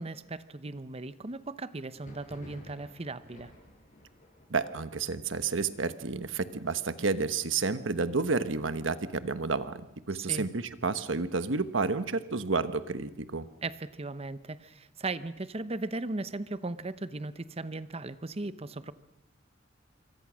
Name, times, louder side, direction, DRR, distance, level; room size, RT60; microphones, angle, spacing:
voice 1, 0.0-3.5 10.1-10.5 13.6-18.9, right 2 dB, 30° right, 14 dB, 0.8 m, -37 dB
Thunder, 1.9-11.4 11.7-12.3 12.6-13.6 14.0-15.7, equal, 40° left, 6.3 m, -58 dB
voice 2, 4.5-9.8 10.1-13.5, right 4 dB, 80° right, 12 dB, 1.2 m, -30 dB
26.5 x 24.0 x 6.3 m, 0.88 s
head